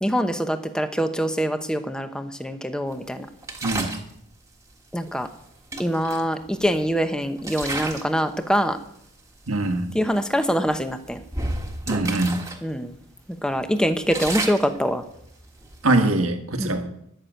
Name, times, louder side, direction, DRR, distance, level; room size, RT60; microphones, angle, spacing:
voice 1, 0.0-3.3 4.9-5.3 5.8-8.8 9.9-11.2 12.6-12.9 13.4-15.0 16.6-16.8, equal, 5° left, 8 dB, 0.8 m, -24 dB
sound 1, 3.4-4.1 5.2-5.3 5.7-6.9 7.4-8.2 8.5-8.8 9.5-9.6 9.9-10.1 10.7-12.6 12.9-13.0 13.5-16.0, right 2 dB, 15° right, 1.5 m, -32 dB
voice 2, 3.6-3.9 9.5-9.9 11.9-12.4 15.8-16.9, right 2 dB, 70° right, 5 dB, 1.5 m, -22 dB
13.0 x 6.8 x 9.1 m, 0.75 s
head